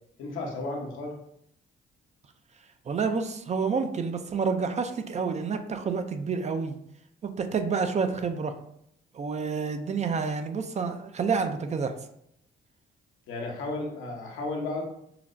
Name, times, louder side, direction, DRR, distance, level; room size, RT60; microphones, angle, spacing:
voice 1, 0.2-1.2 13.3-14.8, left 2 dB, 85° left, -1 dB, 0.9 m, -33 dB
voice 2, 2.9-6.8 7.2-8.5 9.1-11.9, right 5 dB, 35° right, 8 dB, 0.4 m, -29 dB
5.7 x 2.0 x 2.5 m, 0.74 s
cardioid pair, 90°, 20 cm